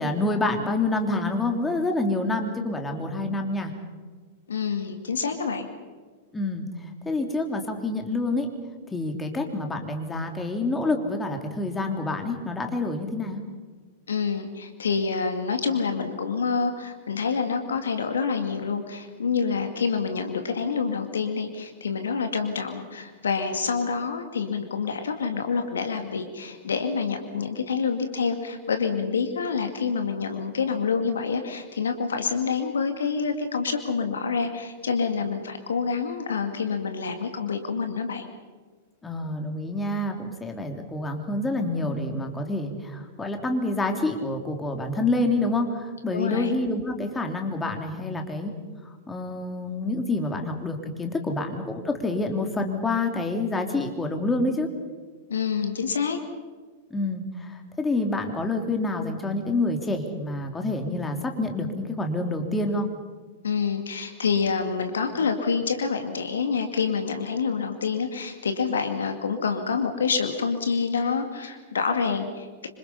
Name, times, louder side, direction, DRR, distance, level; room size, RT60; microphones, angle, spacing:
voice 1, 0.0-3.7 6.3-8.5 8.9-13.4 39.0-48.5 49.1-54.7 56.9-62.9, left 2 dB, 10° left, 3 dB, 3.2 m, -27 dB
voice 2, 4.5-5.7 14.1-38.3 46.1-46.5 55.3-56.2 63.4-72.7, left 5 dB, 70° left, 6 dB, 2.2 m, -27 dB
26.5 x 26.0 x 5.6 m, 1.4 s
figure-of-eight pair, 95°, 0 cm